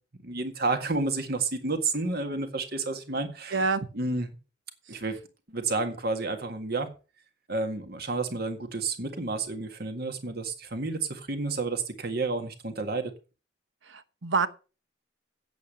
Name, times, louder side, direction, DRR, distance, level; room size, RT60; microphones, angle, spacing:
voice 1, 0.2-3.7 3.9-4.3 4.9-5.2 5.5-6.9 7.5-13.1, right 3 dB, 50° right, 1.8 m, -30 dB
voice 2, 3.5-3.9 13.9-14.5, right 4 dB, 70° right, 1.0 m, -26 dB
8.8 x 8.2 x 6.5 m
head